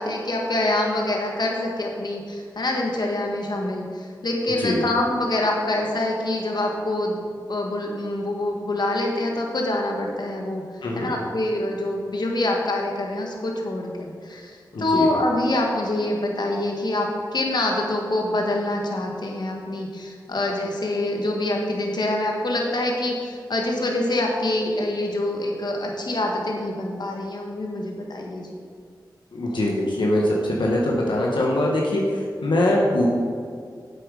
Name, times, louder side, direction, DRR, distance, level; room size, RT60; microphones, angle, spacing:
voice 1, 0.0-7.2 7.5-28.6, left 1 dB, 65° left, 0 dB, 1.6 m, -25 dB
voice 2, 14.7-15.1 29.3-32.0 32.4-33.1, left 1 dB, 85° left, -3 dB, 1.5 m, -22 dB
8.9 x 8.0 x 4.9 m, 2.1 s
cardioid pair, 50°, 8 cm